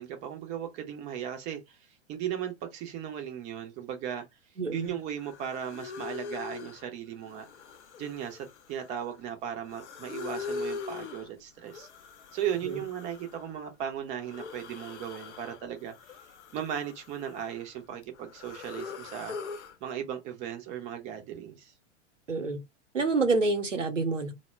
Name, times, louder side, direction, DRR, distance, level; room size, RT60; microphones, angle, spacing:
voice 1, 0.0-1.8 2.1-4.3 4.7-7.5 8.0-11.9 12.3-15.9 16.5-19.4 19.8-21.7, right 9 dB, 20° right, 0.5 m, -36 dB
voice 2, 4.6-5.0 12.6-12.8 22.3-22.6 22.9-24.3, right 3 dB, 85° right, 0.7 m, -28 dB
sound 1, 4.9-5.0 5.2-6.8 7.2-9.2 9.6-11.3 11.7-13.6 14.2-15.6 15.9-17.7 18.0-19.7, left 5 dB, 70° left, 0.5 m, -42 dB
2.1 x 2.0 x 3.2 m
figure-of-eight pair, 100°, 36 cm